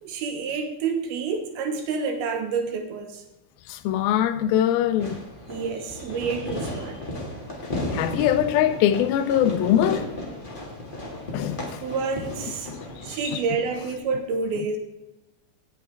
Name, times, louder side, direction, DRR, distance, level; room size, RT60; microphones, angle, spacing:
voice 1, 0.0-3.2 5.5-7.0 11.8-12.7 13.0-14.8, right 5 dB, 85° right, 3.0 m, -28 dB
voice 2, 3.7-5.2 7.9-10.0 11.3-11.8, left 10 dB, 80° left, 2.4 m, -22 dB
Fireworks, 5.0-14.0, left 1 dB, 25° left, 1.0 m, -34 dB
17.0 x 7.6 x 3.4 m
omnidirectional pair, 4.4 m